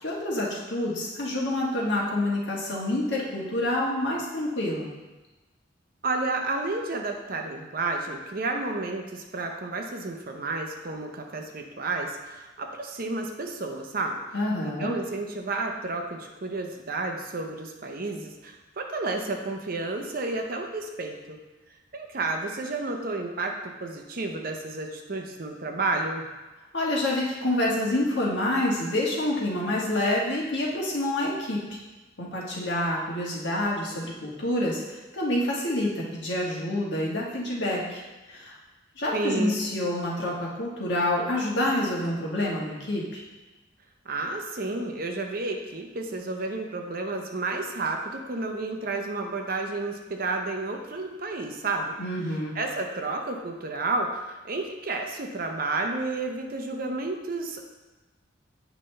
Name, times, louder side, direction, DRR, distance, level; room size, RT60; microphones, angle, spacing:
voice 1, 0.0-4.9 14.3-14.9 26.7-31.8 32.2-38.0 38.3-38.6 39.0-43.2 52.0-52.5, left 1 dB, 65° left, -4 dB, 1.5 m, -27 dB
voice 2, 6.0-14.2 14.6-21.4 21.9-26.3 39.1-39.6 44.1-51.9 52.5-57.6, right 3 dB, 50° right, 3 dB, 0.7 m, -31 dB
8.3 x 5.4 x 3.3 m, 1.1 s
head